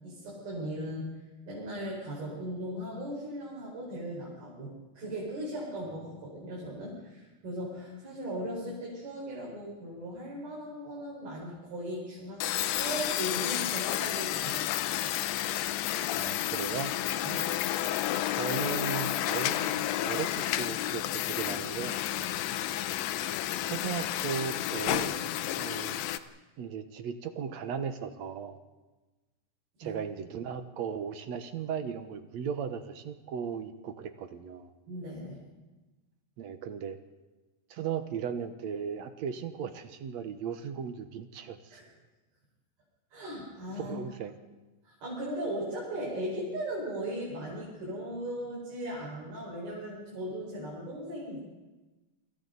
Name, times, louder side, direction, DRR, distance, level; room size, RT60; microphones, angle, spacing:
voice 1, 0.0-1.2 1.5-15.1 17.2-17.6 29.8-29.9 34.9-35.4 41.7-41.9 43.1-44.0 44.8-51.4, equal, 85° right, -5 dB, 7.2 m, -38 dB
sound 1, 12.4-26.2, left 13 dB, 80° left, 2.5 m, -31 dB
voice 2, 16.1-17.0 18.2-22.0 23.6-26.0 26.6-28.6 29.8-34.7 36.4-37.0 37.7-41.8 43.8-44.3, right 7 dB, 65° right, 8 dB, 1.9 m, -37 dB
29.0 x 25.5 x 4.1 m, 1.2 s
omnidirectional pair, 4.2 m